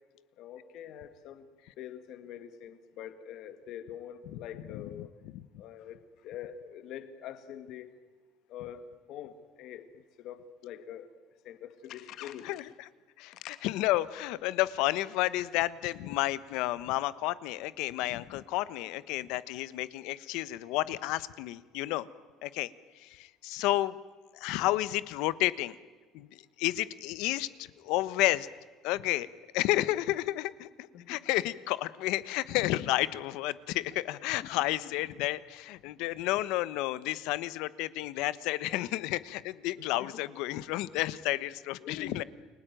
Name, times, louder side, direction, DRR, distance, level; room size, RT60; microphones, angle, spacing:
voice 1, 0.4-1.5 1.8-5.1 5.6-6.0 6.2-7.9 8.5-9.9 10.2-11.1 11.5-12.6 13.3-13.6 30.9-31.2 34.4-34.5 39.8-40.1 41.8-42.2, left 10 dB, 55° left, 10 dB, 2.0 m, -44 dB
voice 2, 4.7-5.4 12.4-12.9 13.2-22.1 22.4-22.7 23.0-24.0 24.3-25.8 26.1-26.3 26.6-27.5 27.8-28.5 28.8-29.3 29.5-30.7 31.1-42.2, left 16 dB, 75° left, 16 dB, 1.1 m, -31 dB
30.0 x 21.5 x 9.2 m, 1.4 s
cardioid pair, 160°, 0 cm